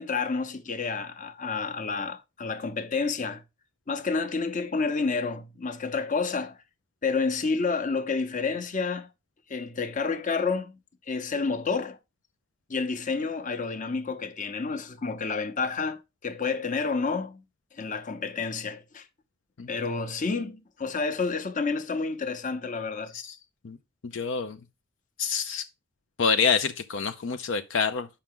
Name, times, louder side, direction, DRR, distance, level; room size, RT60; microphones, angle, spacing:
voice 1, 0.0-3.4 3.9-6.6 7.0-9.1 9.5-10.8 11.1-12.0 12.7-17.4 17.7-19.0 19.7-23.1, left 4 dB, 40° left, 0.9 m, -29 dB
voice 2, 24.0-24.6 25.2-25.6 26.2-28.1, left 5 dB, 75° left, 0.5 m, -27 dB
7.3 x 5.7 x 3.7 m
head